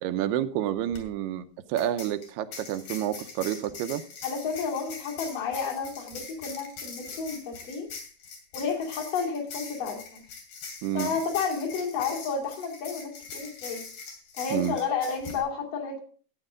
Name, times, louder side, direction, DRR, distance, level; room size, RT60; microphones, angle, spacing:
voice 1, 0.0-4.0 10.8-11.2 14.5-14.8, right 11 dB, 90° right, 9 dB, 2.8 m, -29 dB
sound 1, 0.8-1.0 1.8-15.4, left 5 dB, 75° left, 4.5 m, -42 dB
voice 2, 4.2-7.9 8.5-10.2 10.9-13.8 14.4-16.0, left 5 dB, 60° left, -1 dB, 4.3 m, -31 dB
14.0 x 9.0 x 3.8 m, 0.42 s
omnidirectional pair, 4.5 m